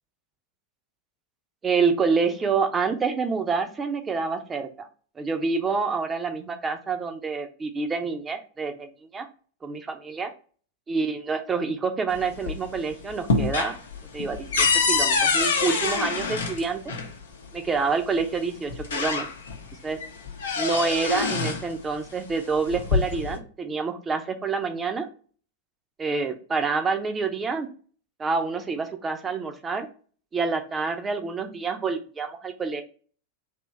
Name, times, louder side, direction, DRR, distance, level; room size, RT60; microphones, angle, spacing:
voice 1, 1.6-4.9 5.2-9.3 9.6-10.3 10.9-13.8 14.1-16.9 17.5-19.3 19.8-20.0 20.6-25.1 26.0-27.7 28.2-29.9 30.3-32.8, right 4 dB, 20° right, 7 dB, 0.7 m, -27 dB
sound 1, 12.1-12.8 13.1-17.1 18.2-18.3 18.7-19.6 20.0-21.7 22.6-23.4, left 4 dB, 65° left, 0.8 m, -25 dB
3.5 x 2.9 x 4.0 m, 0.41 s
figure-of-eight pair, 90°, 0 cm